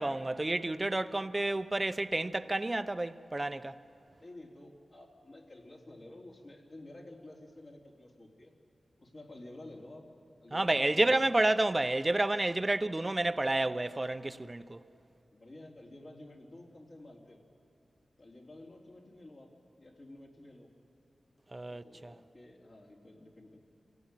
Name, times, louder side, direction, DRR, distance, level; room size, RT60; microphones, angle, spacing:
voice 1, 0.0-3.8 10.5-14.8 21.5-22.1, right 2 dB, 25° right, 0.8 m, -30 dB
voice 2, 4.2-8.5 9.0-10.1 10.4-11.2 15.3-17.5 18.2-20.7 21.7-23.6, left 1 dB, 50° left, 3.6 m, -51 dB
26.5 x 17.0 x 9.1 m
wide cardioid pair, 80°, 0 cm